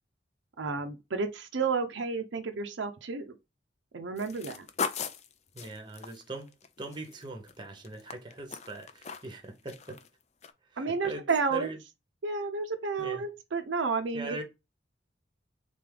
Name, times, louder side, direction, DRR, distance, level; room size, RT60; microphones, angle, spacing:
voice 1, 0.6-3.3 3.9-4.7 10.8-11.7 12.2-14.4, right 4 dB, 75° right, 0.6 m, -31 dB
sound 1, 4.2-7.5 7.8-9.4 9.7-10.1 10.4-10.5, left 6 dB, 35° left, 0.4 m, -38 dB
voice 2, 5.5-6.5 6.8-10.0 10.7-11.2 11.5-11.8 13.0-13.2 14.1-14.4, right 1 dB, 25° right, 0.9 m, -41 dB
3.7 x 3.4 x 3.7 m
head